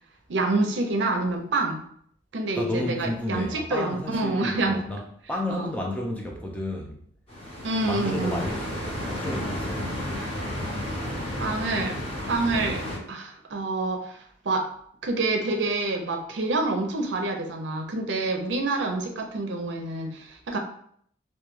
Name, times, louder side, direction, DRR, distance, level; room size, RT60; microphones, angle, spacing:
voice 1, 0.3-1.8 2.3-4.8 5.5-5.7 7.6-8.5 11.4-12.0 12.3-12.8 13.1-14.7 15.0-20.6, right 2 dB, 70° right, 3 dB, 0.5 m, -27 dB
voice 2, 2.5-5.0 5.3-7.0 7.9-10.0, left 1 dB, 10° left, 0 dB, 0.4 m, -32 dB
sound 1, 7.3-13.0, left 1 dB, 30° left, 0.9 m, -32 dB
2.2 x 2.2 x 3.0 m, 0.64 s
head